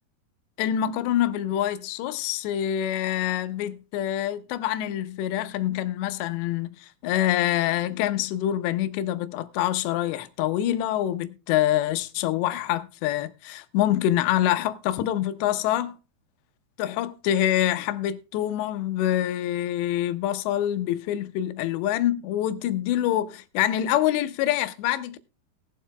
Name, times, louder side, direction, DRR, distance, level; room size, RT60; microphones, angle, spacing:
voice 1, 0.6-15.9 16.8-25.2, left 12 dB, 85° left, 2.9 m, -26 dB
19.5 x 7.5 x 2.2 m
omnidirectional pair, 5.0 m